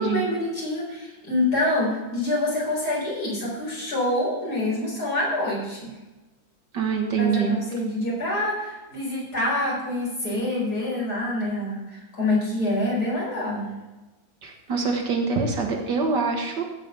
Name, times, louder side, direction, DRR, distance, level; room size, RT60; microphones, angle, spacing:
voice 1, 0.0-5.9 7.2-13.7, left 1 dB, 50° left, -5 dB, 5.6 m, -26 dB
voice 2, 6.7-7.6 14.4-16.6, right 5 dB, 60° right, 2 dB, 2.2 m, -24 dB
16.0 x 5.4 x 6.8 m, 1.1 s
omnidirectional pair, 2.1 m